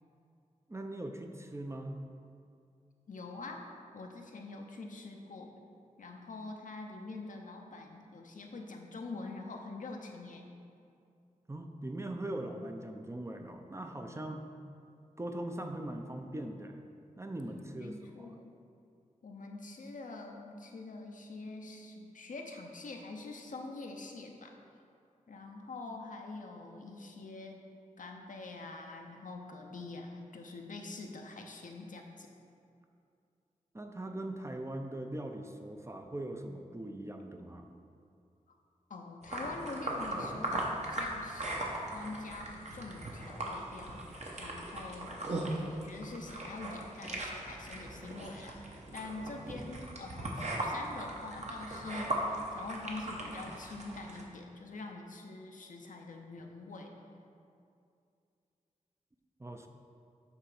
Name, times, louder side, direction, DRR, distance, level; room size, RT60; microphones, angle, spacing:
voice 1, 0.7-2.0 11.5-14.5 15.2-16.8 17.2-18.3 33.7-37.7 59.4-59.7, right 1 dB, 20° right, 4 dB, 0.5 m, -41 dB
voice 2, 3.1-5.5 6.0-10.5 17.8-18.5 19.2-24.6 25.3-27.6 28.0-32.3 38.5-38.6 38.9-44.0 44.4-56.9, left 3 dB, 70° left, 2 dB, 0.7 m, -45 dB
sound 1, 39.2-54.2, right 1 dB, 55° right, 1.0 m, -39 dB
8.1 x 3.2 x 4.9 m, 2.5 s
cardioid pair, 60°, 14 cm